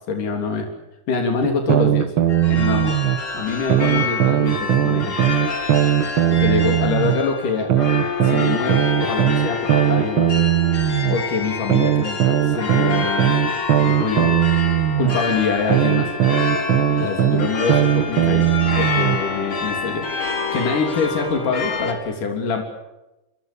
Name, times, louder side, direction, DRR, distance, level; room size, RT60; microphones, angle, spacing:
voice 1, 0.1-0.7 1.1-2.1 2.5-2.9 3.3-5.2 6.3-7.7 8.2-10.3 11.1-12.2 12.5-13.5 13.8-14.4 15.0-16.1 17.0-20.1 20.5-22.6, left 4 dB, 80° left, 3 dB, 4.9 m, -25 dB
sound 1, 1.4-3.2 3.7-7.2 7.7-11.2 11.7-15.2 15.7-19.2, right 12 dB, 55° right, 1.5 m, -18 dB
sound 2, 2.3-21.9, left 5 dB, 40° left, 3.9 m, -27 dB
26.5 x 26.5 x 7.0 m, 0.97 s
omnidirectional pair, 3.7 m